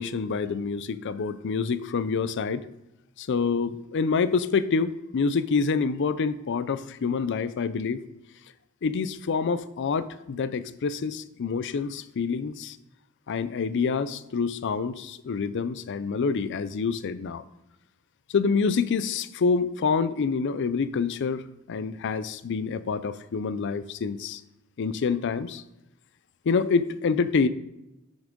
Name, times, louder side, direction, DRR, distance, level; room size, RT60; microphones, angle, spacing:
voice 1, 0.0-2.6 3.2-8.0 8.8-12.8 13.3-17.4 18.3-21.4 21.7-24.4 24.8-25.6 26.5-27.5, left 5 dB, 55° left, 14 dB, 0.4 m, -27 dB
8.5 x 6.3 x 3.7 m, 0.94 s
head